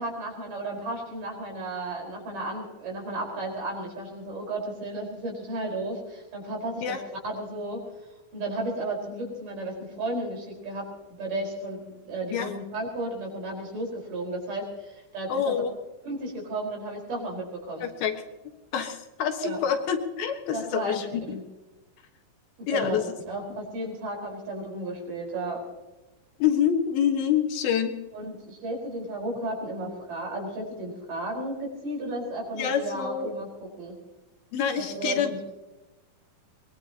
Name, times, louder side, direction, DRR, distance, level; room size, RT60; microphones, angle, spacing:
voice 1, 0.0-7.0 7.2-7.8 8.3-15.5 16.0-17.9 19.4-19.6 20.5-21.0 21.3-21.4 22.7-25.6 28.1-33.5 33.8-34.0 34.8-35.5, right 1 dB, 55° right, 0 dB, 6.3 m, -33 dB
voice 2, 15.3-15.7 17.8-18.1 18.7-21.2 22.7-23.0 26.4-27.9 32.6-33.3 34.5-35.4, left 8 dB, 75° left, 4 dB, 3.2 m, -26 dB
23.0 x 21.5 x 2.9 m, 1.1 s
omnidirectional pair, 4.4 m